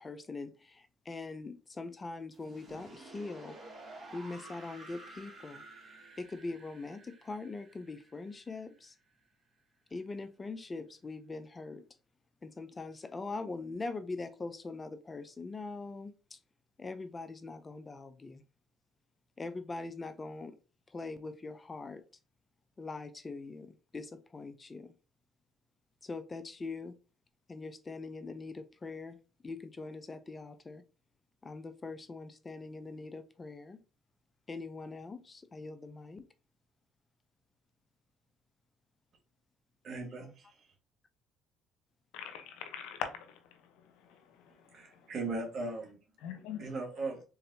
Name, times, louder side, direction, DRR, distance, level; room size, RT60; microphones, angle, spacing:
voice 1, 0.0-3.6 4.1-5.6 6.2-8.9 9.9-11.8 12.4-16.4 16.8-18.4 19.4-20.6 20.9-22.0 22.8-24.9 26.0-27.0 27.5-29.2 29.4-30.8 31.4-33.8 34.5-36.2, left 3 dB, 30° left, 0.6 m, -42 dB
sound 1, 2.3-9.2, right 2 dB, 35° right, 2.3 m, -52 dB
voice 2, 39.8-40.6 44.7-45.9 46.6-47.2, right 3 dB, 55° right, 1.8 m, -38 dB
voice 3, 42.1-45.1 46.2-46.7, left 8 dB, 75° left, 0.8 m, -43 dB
3.9 x 3.8 x 2.7 m
supercardioid pair, 65°, 0 cm